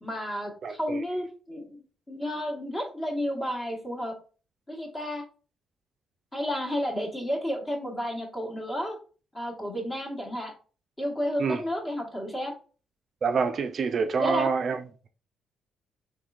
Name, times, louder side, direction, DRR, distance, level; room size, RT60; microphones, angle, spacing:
voice 1, 0.0-4.2 4.7-5.2 6.3-9.0 9.3-10.5 11.0-12.5 14.2-14.5, equal, 20° left, 1.2 m, -31 dB
voice 2, 0.6-1.0 11.4-11.6 13.2-14.8, right 5 dB, 50° right, 0.3 m, -27 dB
3.5 x 3.0 x 2.4 m
cardioid pair, 90°, 0 cm